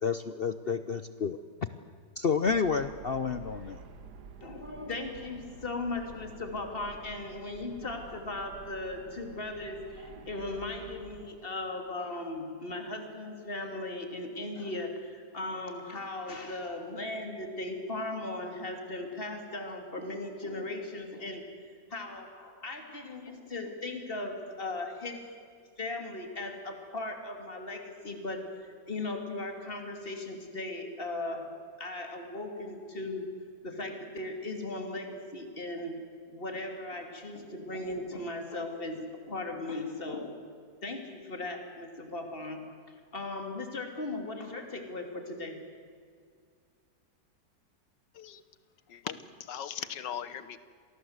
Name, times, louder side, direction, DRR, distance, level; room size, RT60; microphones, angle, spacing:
voice 1, 0.0-1.4 2.2-3.8, left 5 dB, 55° left, 12 dB, 0.6 m, -30 dB
sound 1, 2.4-11.3, right 5 dB, 70° right, 1.9 m, -49 dB
voice 2, 4.4-21.4 21.9-25.3 25.8-33.4 33.6-36.0 36.3-40.5 40.8-45.7, left 2 dB, 30° left, 4 dB, 3.0 m, -38 dB
voice 3, 48.9-50.6, left 9 dB, 90° left, 14 dB, 1.8 m, -39 dB
27.0 x 18.5 x 8.0 m, 2.1 s
omnidirectional pair, 1.8 m